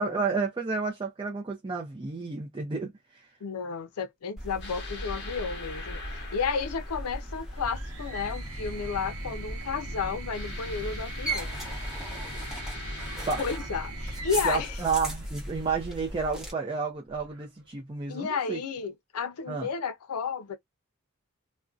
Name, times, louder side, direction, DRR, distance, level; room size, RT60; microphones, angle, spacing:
voice 1, 0.0-3.3 13.2-13.4 14.4-18.6 19.5-19.7, right 4 dB, 20° right, 0.4 m, -31 dB
voice 2, 3.4-11.5 13.4-14.8 18.1-20.6, left 5 dB, 85° left, 0.5 m, -32 dB
sound 1, 4.4-16.5, right 1 dB, ahead, 0.9 m, -37 dB
sound 2, 4.6-8.0 10.3-13.6, left 4 dB, 50° left, 0.8 m, -43 dB
sound 3, 7.5-15.9 17.1-17.7, right 3 dB, 80° right, 0.9 m, -43 dB
2.5 x 2.1 x 2.3 m
head